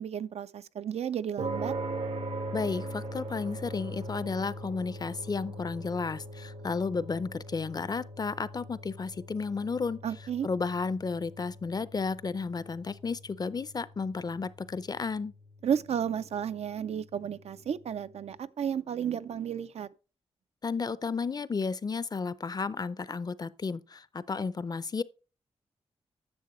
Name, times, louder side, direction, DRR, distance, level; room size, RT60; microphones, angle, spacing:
voice 1, 0.0-1.7 10.0-10.5 15.6-19.9, right 8 dB, 70° right, 0.4 m, -33 dB
sound 1, 1.4-17.9, right 1 dB, 90° right, 1.9 m, -41 dB
voice 2, 2.5-10.0 10.4-15.3 20.6-25.0, left 4 dB, 35° left, 0.5 m, -33 dB
10.5 x 7.2 x 3.1 m
cardioid pair, 80°, 11 cm